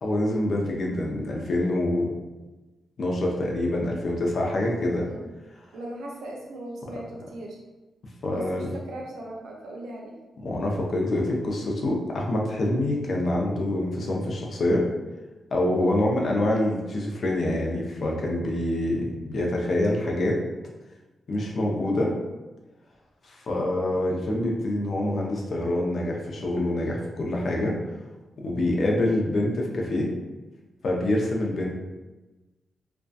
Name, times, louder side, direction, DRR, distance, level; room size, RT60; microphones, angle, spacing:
voice 1, 0.0-2.2 3.0-5.1 6.9-7.0 8.2-8.7 10.4-14.9 15.5-20.4 21.3-22.1 23.2-27.8 28.4-30.1 30.8-31.7, left 1 dB, 60° left, -1 dB, 0.5 m, -26 dB
voice 2, 5.7-7.6 8.3-10.1 15.8-16.0, right 1 dB, 85° right, -1 dB, 0.5 m, -39 dB
2.6 x 2.2 x 2.3 m, 1.1 s
cardioid pair, 85°, 0 cm